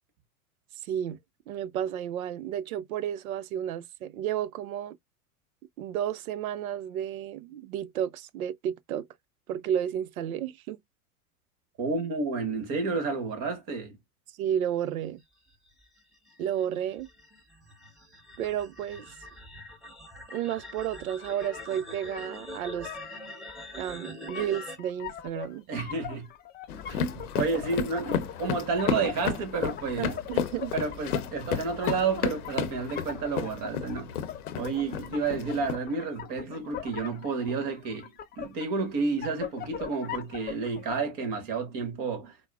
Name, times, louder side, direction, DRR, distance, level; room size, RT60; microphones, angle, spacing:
voice 1, 0.8-1.2 1.5-5.0 5.8-9.1 9.5-10.8 14.4-15.2 16.4-17.1 18.4-19.1 20.3-22.9 23.8-25.7 30.0-30.7, right 10 dB, 75° right, 0.6 m, -32 dB
voice 2, 11.8-14.0 25.7-26.3 26.9-30.1 30.7-34.1 34.6-38.1 38.4-42.3, right 4 dB, 45° right, 1.4 m, -30 dB
sound 1, 15.5-24.8, left 1 dB, ahead, 0.9 m, -44 dB
sound 2, 21.2-41.0, left 9 dB, 25° left, 0.5 m, -41 dB
sound 3, 26.7-35.8, left 7 dB, 80° left, 0.7 m, -33 dB
4.4 x 2.0 x 2.3 m
hypercardioid pair, 95°, 44 cm